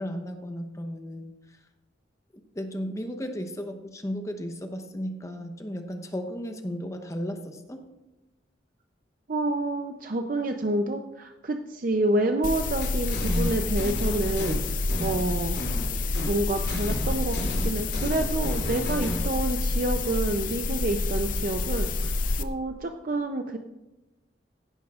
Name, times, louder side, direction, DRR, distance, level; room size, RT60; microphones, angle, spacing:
voice 1, 0.0-1.3 2.5-7.8, equal, 15° left, 6 dB, 0.8 m, -34 dB
voice 2, 9.3-15.6 16.3-23.6, right 2 dB, 50° right, 6 dB, 0.5 m, -28 dB
sound 1, 12.4-22.4, left 3 dB, 50° left, 0.6 m, -28 dB
sound 2, 12.8-14.5 14.9-15.9 16.1-16.3 16.7-19.2, equal, 70° left, 2.6 m, -33 dB
15.5 x 11.0 x 2.4 m, 1.0 s
head